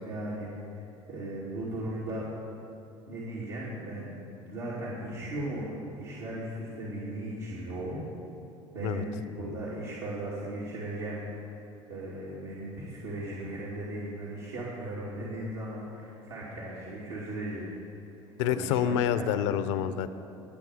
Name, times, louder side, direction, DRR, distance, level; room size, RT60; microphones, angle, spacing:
voice 1, 0.1-2.3 3.1-4.1 4.4-8.0 8.7-11.6 11.9-17.7 18.2-19.2, right 1 dB, 80° right, -8 dB, 2.6 m, -37 dB
voice 2, 18.4-20.1, left 9 dB, 80° left, 12 dB, 0.6 m, -27 dB
20.5 x 7.7 x 4.9 m, 2.9 s
hypercardioid pair, 75°, 15 cm